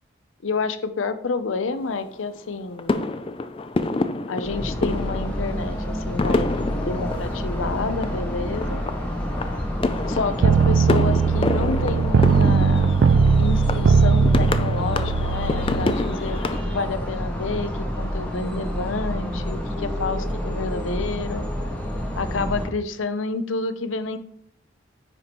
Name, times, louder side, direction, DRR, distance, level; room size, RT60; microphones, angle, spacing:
voice 1, 0.4-3.1 4.3-6.6 6.8-8.8 10.1-13.0 13.4-17.7 18.0-21.5 22.2-24.2, left 4 dB, 90° left, 11 dB, 0.6 m, -29 dB
sound 1, 1.7-2.4 2.8-16.6, left 2 dB, 30° left, 0.4 m, -28 dB
sound 2, 4.4-22.7, equal, 5° left, 1.2 m, -29 dB
sound 3, 10.4-15.9, right 5 dB, 75° right, 0.3 m, -19 dB
9.6 x 5.2 x 3.0 m, 0.66 s
head